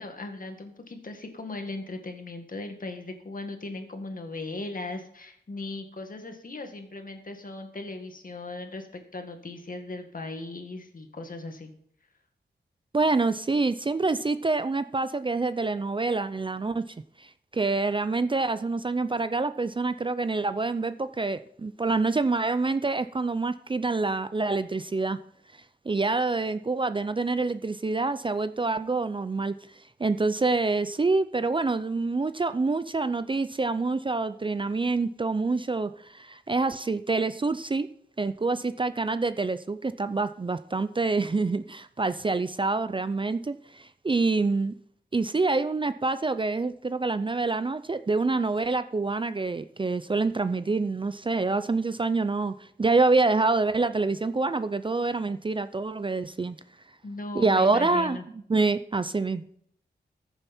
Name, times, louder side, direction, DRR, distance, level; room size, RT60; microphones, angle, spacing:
voice 1, 0.0-11.7 57.0-58.2, left 2 dB, 50° left, 5 dB, 1.9 m, -38 dB
voice 2, 12.9-16.8 17.2-25.2 25.9-29.6 30.0-37.9 38.2-44.8 45.1-56.6 57.3-58.2 58.5-59.5, right 3 dB, 30° right, 13 dB, 0.5 m, -26 dB
14.5 x 7.1 x 4.3 m, 0.68 s
wide cardioid pair, 80°, 18 cm